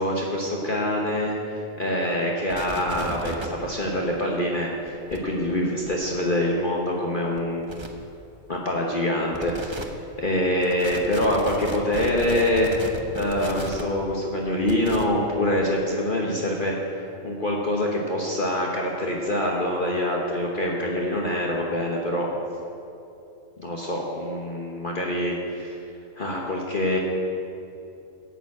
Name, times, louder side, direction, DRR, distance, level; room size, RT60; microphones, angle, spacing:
voice 1, 0.0-7.8 8.5-9.7 10.2-12.7 13.1-22.3 23.6-25.8 26.2-27.0, left 1 dB, 40° left, -2 dB, 1.3 m, -25 dB
sound 1, 2.5-3.5 4.9-5.2 5.9-6.0 7.4-7.5 7.7-7.9 9.3-9.8 10.6-13.8 14.7-15.0, right 2 dB, 25° right, 0.8 m, -35 dB
11.5 x 7.1 x 8.6 m, 2.7 s
omnidirectional pair, 1.4 m